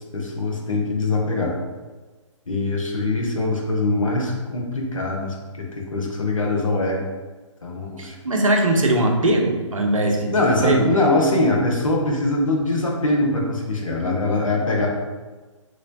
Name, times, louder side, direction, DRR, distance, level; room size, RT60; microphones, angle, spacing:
voice 1, 0.1-1.5 2.5-7.0 7.6-8.2 10.3-14.9, left 2 dB, 80° left, -1 dB, 0.9 m, -22 dB
voice 2, 8.0-10.9, right 1 dB, 80° right, 2 dB, 0.7 m, -20 dB
3.0 x 3.0 x 2.7 m, 1.3 s
figure-of-eight pair, 140°, 17 cm